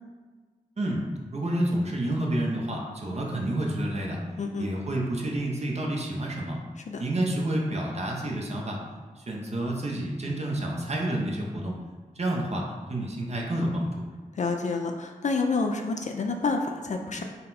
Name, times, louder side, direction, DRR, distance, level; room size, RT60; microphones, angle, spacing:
voice 1, 1.3-4.2 4.6-6.6 7.0-8.8 9.2-11.7 12.2-14.0, right 1 dB, 45° right, -2 dB, 0.8 m, -29 dB
voice 2, 4.4-4.7 6.8-7.0 14.4-17.2, left 4 dB, 55° left, 3 dB, 0.4 m, -28 dB
4.0 x 2.2 x 4.0 m, 1.4 s
cardioid pair, 45°, 15 cm